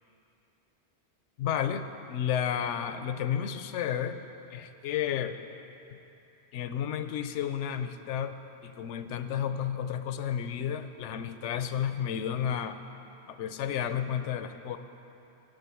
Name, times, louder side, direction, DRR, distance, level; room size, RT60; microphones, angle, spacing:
voice 1, 1.4-4.2 4.5-5.4 6.5-8.3 8.6-12.8 13.3-14.8, left 9 dB, 85° left, 10 dB, 0.9 m, -32 dB
9.0 x 7.8 x 6.9 m, 2.9 s
omnidirectional pair, 1.2 m